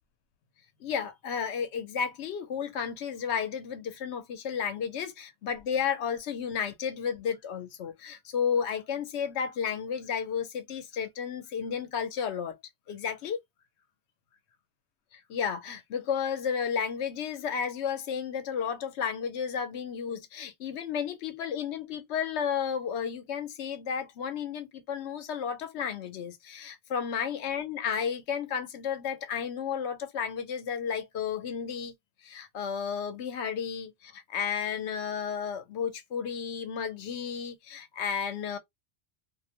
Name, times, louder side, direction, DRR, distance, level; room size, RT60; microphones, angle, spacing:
voice 1, 0.8-12.5 12.9-13.4 15.1-31.9 32.2-38.6, left 7 dB, 85° left, 0.9 m, -32 dB
2.5 x 2.1 x 2.8 m
omnidirectional pair, 1.1 m